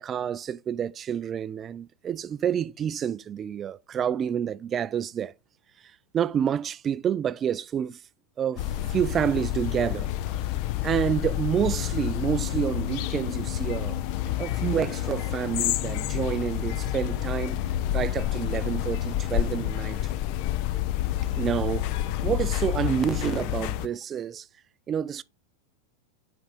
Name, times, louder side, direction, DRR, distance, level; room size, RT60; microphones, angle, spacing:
voice 1, 0.0-5.3 6.1-8.0 8.4-10.1 10.8-14.0 14.4-17.7 17.9-20.0 21.4-22.0 22.2-24.5 24.9-25.2, right 9 dB, 25° right, 0.3 m, -28 dB
sound 1, 8.6-23.9, left 13 dB, 45° left, 0.4 m, -29 dB
7.0 x 3.6 x 3.8 m
figure-of-eight pair, 90°, 0 cm